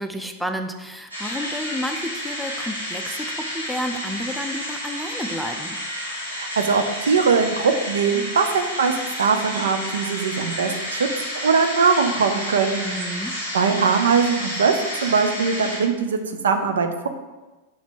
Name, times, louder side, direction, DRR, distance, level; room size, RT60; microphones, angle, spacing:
voice 1, 0.0-5.8 12.8-13.3, equal, ahead, 5 dB, 0.6 m, -31 dB
sound 1, 1.1-15.8, equal, 85° right, 2.2 m, -31 dB
voice 2, 6.3-11.1 11.4-12.8 13.5-17.1, right 5 dB, 65° right, 7 dB, 0.6 m, -21 dB
6.2 x 5.0 x 5.3 m, 1.2 s
figure-of-eight pair, 90°, 0 cm